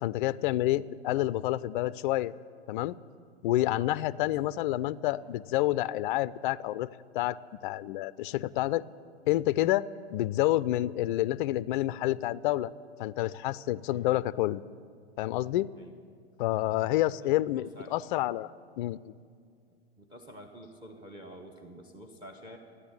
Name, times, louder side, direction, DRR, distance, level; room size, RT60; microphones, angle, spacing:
voice 1, 0.0-2.3 2.7-3.0 3.4-6.9 7.1-7.4 7.6-8.8 9.3-12.7 13.0-14.6 15.2-15.7 16.4-18.5 18.8-19.1, left 15 dB, 50° left, 18 dB, 0.4 m, -28 dB
voice 2, 17.2-18.0 19.7-22.6, equal, 15° right, 5 dB, 1.1 m, -49 dB
13.5 x 9.9 x 8.8 m, 2.2 s
hypercardioid pair, 105°, 33 cm